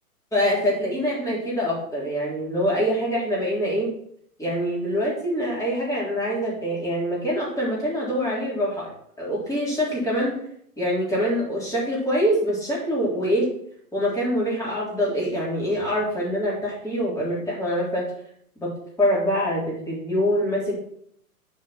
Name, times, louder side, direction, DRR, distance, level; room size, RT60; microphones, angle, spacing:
voice 1, 0.3-3.9 4.4-8.9 9.2-10.3 10.8-13.5 13.9-18.1 18.6-18.7 19.0-20.8, equal, 5° left, -6 dB, 3.7 m, -24 dB
7.7 x 4.9 x 5.9 m, 0.67 s
figure-of-eight pair, 115°, 46 cm